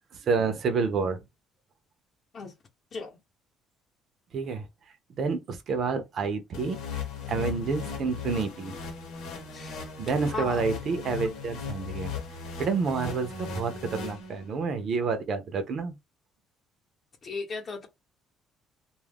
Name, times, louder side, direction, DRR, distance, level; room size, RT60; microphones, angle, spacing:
voice 1, 0.2-1.2 4.3-4.7 5.2-7.0 7.3-8.7 10.0-12.1 12.6-15.9, right 5 dB, 45° right, 0.5 m, -29 dB
voice 2, 2.9-3.2 9.5-9.9 10.2-10.6 17.2-17.9, left 3 dB, 35° left, 0.8 m, -36 dB
sound 1, 6.5-14.7, left 6 dB, 80° left, 0.9 m, -37 dB
2.3 x 2.1 x 3.4 m
cardioid pair, 145°, 0 cm